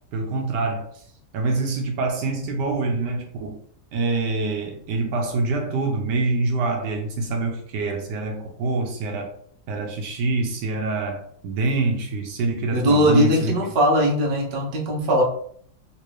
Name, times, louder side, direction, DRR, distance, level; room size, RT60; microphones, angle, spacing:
voice 1, 0.1-1.0 1.3-3.6 3.9-9.3 9.7-13.5, right 3 dB, 70° right, 2 dB, 1.2 m, -25 dB
voice 2, 12.7-15.2, equal, 50° right, -1 dB, 0.7 m, -20 dB
3.3 x 2.8 x 3.1 m, 0.62 s
omnidirectional pair, 2.0 m